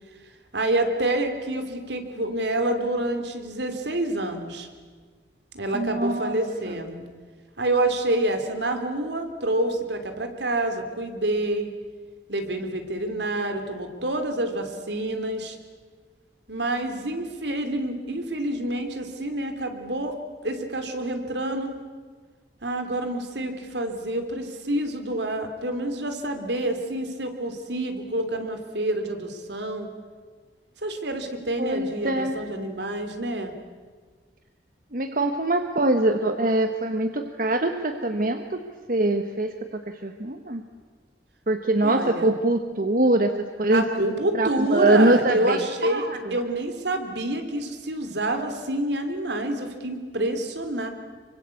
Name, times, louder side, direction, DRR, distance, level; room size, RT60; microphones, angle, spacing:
voice 1, 0.5-4.7 5.5-7.0 7.6-11.7 12.3-15.6 16.5-20.2 20.4-21.8 22.6-29.9 30.8-33.5 41.8-42.3 43.7-50.9, right 1 dB, 75° right, 6 dB, 3.0 m, -27 dB
voice 2, 5.7-6.4 6.7-6.8 31.6-32.3 34.9-38.6 38.9-40.6 41.5-43.3 43.6-43.8 44.3-46.2, right 2 dB, 50° right, 7 dB, 1.2 m, -23 dB
25.5 x 24.5 x 8.4 m, 1.6 s
head